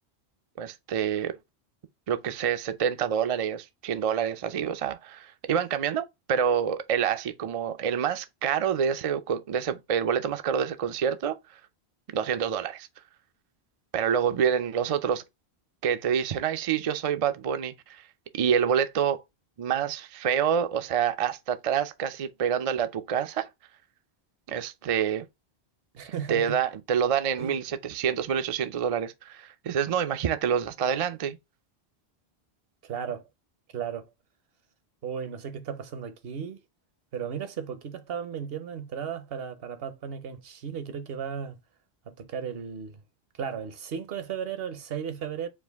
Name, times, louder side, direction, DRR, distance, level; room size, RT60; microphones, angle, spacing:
voice 1, 0.6-1.3 2.1-11.4 12.1-12.9 13.9-15.2 15.8-18.1 18.3-19.2 19.6-23.4 24.5-25.3 26.3-31.4, right 8 dB, 50° right, 0.4 m, -27 dB
voice 2, 25.9-26.6 27.4-27.5 32.8-33.2 33.7-34.1 35.0-36.6 37.1-41.6 42.1-43.0 43.4-45.5, right 7 dB, 70° right, 0.9 m, -35 dB
4.6 x 2.5 x 3.4 m
omnidirectional pair, 1.1 m